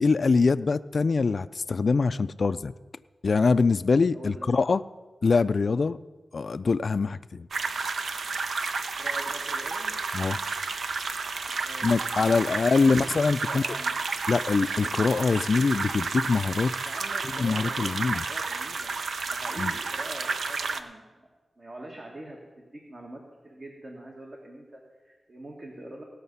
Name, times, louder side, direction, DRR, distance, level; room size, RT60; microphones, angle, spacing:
voice 1, 0.0-2.7 3.2-4.8 5.2-6.0 6.3-7.5 10.1-10.4 11.8-13.6 14.3-16.7 17.3-18.2 19.6-19.7, left 4 dB, 60° left, 14 dB, 0.3 m, -24 dB
voice 2, 4.1-4.7 9.0-9.9 11.6-12.5 12.9-14.1 16.8-18.9 19.3-21.3 21.6-26.0, right 1 dB, 45° right, -1 dB, 1.8 m, -44 dB
sound 1, 7.5-20.8, right 4 dB, 80° right, 0.6 m, -31 dB
17.5 x 6.5 x 5.5 m, 1.3 s
cardioid pair, 65°, 0 cm